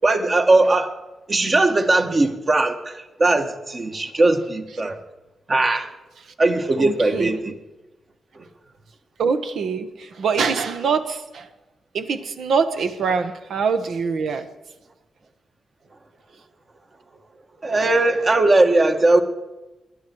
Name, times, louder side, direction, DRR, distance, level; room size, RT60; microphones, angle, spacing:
voice 1, 0.0-0.9 1.3-5.0 5.5-5.9 6.4-7.5 17.6-19.2, right 2 dB, 40° right, 5 dB, 1.6 m, -19 dB
voice 2, 6.8-7.5 9.2-11.5 11.9-14.5, right 5 dB, 80° right, 9 dB, 1.1 m, -24 dB
19.5 x 11.5 x 4.7 m, 1.1 s
cardioid pair, 80°, 0 cm